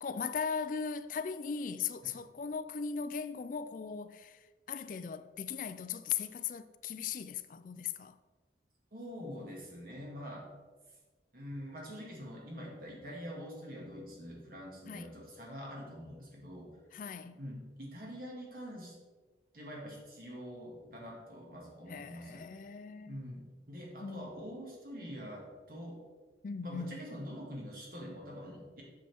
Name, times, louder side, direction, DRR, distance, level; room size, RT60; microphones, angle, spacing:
voice 1, 0.0-4.4 4.7-8.2 14.9-15.1 16.9-17.4 21.9-23.2 24.0-24.3 26.4-27.0, left 6 dB, 45° left, 0.4 m, -38 dB
voice 2, 8.9-10.5 11.3-16.7 17.3-19.0 19.5-22.5 23.1-26.0 26.6-28.8, equal, 55° right, 2.0 m, -45 dB
7.7 x 6.7 x 3.5 m
head